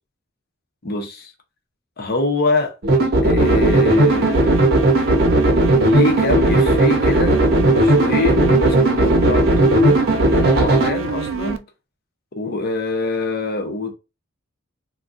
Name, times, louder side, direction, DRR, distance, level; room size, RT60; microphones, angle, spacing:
voice 1, 0.8-1.3 2.0-2.7 3.2-4.6 5.8-11.6 12.3-13.9, left 3 dB, 50° left, 0.7 m, -24 dB
sound 1, 2.8-10.9, right 1 dB, 50° right, 0.8 m, -16 dB
sound 2, 3.4-11.6, right 5 dB, 75° right, 0.4 m, -26 dB
3.5 x 2.3 x 2.5 m
head